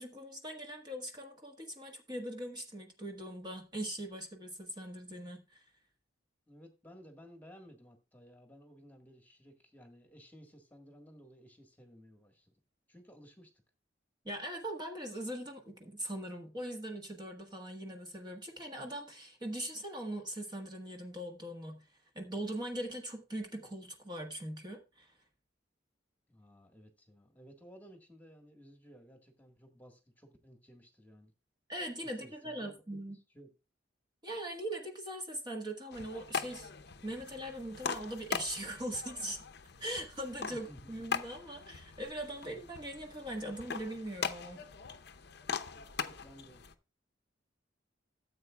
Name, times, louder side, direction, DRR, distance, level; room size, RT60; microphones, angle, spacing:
voice 1, 0.0-5.6 14.2-21.8 22.1-25.1 31.7-33.2 34.2-36.7 37.0-39.4 39.8-44.6, right 1 dB, 25° right, 1.4 m, -41 dB
voice 2, 6.5-12.6 12.9-13.5 26.3-31.3 32.0-33.0 33.3-33.5 40.5-41.1 45.7-46.6, equal, 10° left, 1.5 m, -56 dB
sound 1, 35.9-46.7, left 6 dB, 60° left, 0.7 m, -41 dB
14.0 x 7.8 x 2.3 m
head